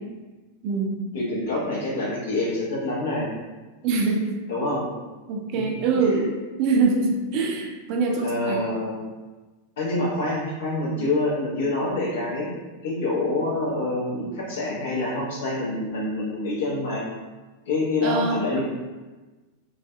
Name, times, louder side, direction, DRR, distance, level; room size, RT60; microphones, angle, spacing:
voice 1, 0.6-1.0 3.8-4.4 5.3-6.3 6.6-8.6 18.0-18.6, right 4 dB, 40° right, 2 dB, 0.3 m, -24 dB
voice 2, 1.1-3.3 4.5-4.9 5.5-6.2 8.2-9.0 9.8-12.5 12.8-17.0 17.7-18.6, left 2 dB, 60° left, -7 dB, 1.0 m, -26 dB
2.5 x 2.3 x 2.3 m, 1.2 s
figure-of-eight pair, 90°, 0 cm